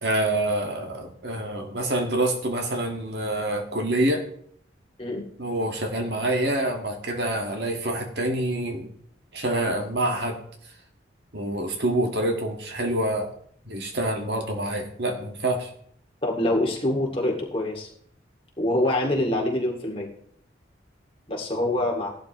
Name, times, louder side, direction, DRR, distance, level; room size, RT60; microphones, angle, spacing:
voice 1, 0.0-4.3 5.4-8.9 9.3-10.4 11.3-13.3 13.7-15.7, right 1 dB, 65° right, 3 dB, 1.7 m, -26 dB
voice 2, 16.2-17.9 18.6-20.1 21.3-22.1, left 1 dB, 30° left, -1 dB, 2.2 m, -25 dB
16.5 x 11.5 x 3.1 m, 0.65 s
head